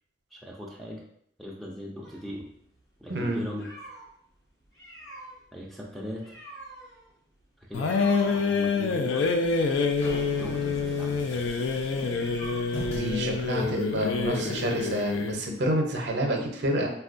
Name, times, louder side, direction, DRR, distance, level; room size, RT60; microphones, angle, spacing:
voice 1, 0.3-1.0 1.4-2.5 3.0-3.7 5.5-6.4 7.6-9.3 10.4-11.6, equal, ahead, -2 dB, 0.3 m, -39 dB
sound 1, 2.0-4.1 4.6-13.0, right 1 dB, 70° left, 1.0 m, -47 dB
sound 2, 7.7-15.4, left 4 dB, 85° left, 0.3 m, -27 dB
sound 3, 9.3-14.3, equal, 35° left, 0.7 m, -42 dB
voice 2, 12.9-16.9, right 1 dB, 65° right, 2 dB, 0.6 m, -28 dB
4.2 x 2.2 x 2.5 m, 0.72 s
head